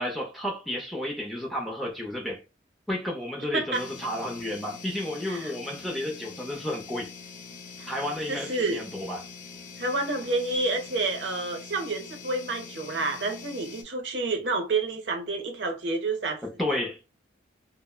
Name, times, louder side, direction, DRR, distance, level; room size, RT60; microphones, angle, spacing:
voice 1, 0.0-2.4 2.9-7.1 7.9-9.2 16.4-17.0, left 1 dB, ahead, 0.5 m, -32 dB
voice 2, 3.5-3.9 5.3-5.5 7.8-7.9 8.3-8.8 9.8-16.4, right 3 dB, 75° right, 0.7 m, -29 dB
sound 1, 3.7-13.8, left 5 dB, 45° left, 0.6 m, -44 dB
3.3 x 2.0 x 2.3 m
head